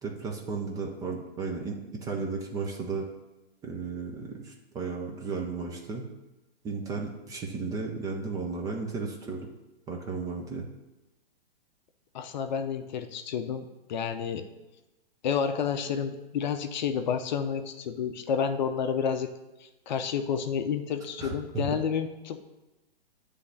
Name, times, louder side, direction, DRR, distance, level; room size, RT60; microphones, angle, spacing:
voice 1, 0.0-3.1 3.6-6.1 6.6-9.5 9.9-10.7 21.2-21.3, right 4 dB, 10° right, 0 dB, 0.6 m, -34 dB
voice 2, 12.1-14.4 15.2-19.3 19.6-22.4, left 7 dB, 45° left, 8 dB, 0.7 m, -30 dB
9.4 x 3.3 x 6.6 m, 1.0 s
figure-of-eight pair, 125°, 31 cm